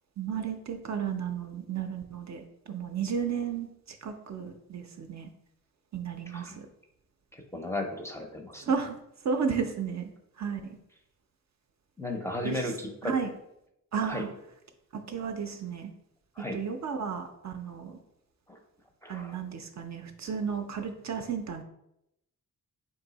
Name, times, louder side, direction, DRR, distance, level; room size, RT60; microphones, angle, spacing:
voice 1, 0.2-5.3 5.9-6.7 8.6-9.0 9.2-10.1 10.4-10.8 12.4-12.7 13.0-13.3 13.9-14.3 15.1-15.9 16.5-18.0 19.1-21.6, right 6 dB, 50° right, 6 dB, 0.4 m, -33 dB
voice 2, 7.3-8.6 12.0-13.1 14.0-14.2 16.4-16.6 18.5-18.6 19.0-19.4, left 1 dB, 10° left, 2 dB, 0.5 m, -35 dB
3.9 x 2.6 x 3.9 m, 0.83 s
wide cardioid pair, 105°, 35 cm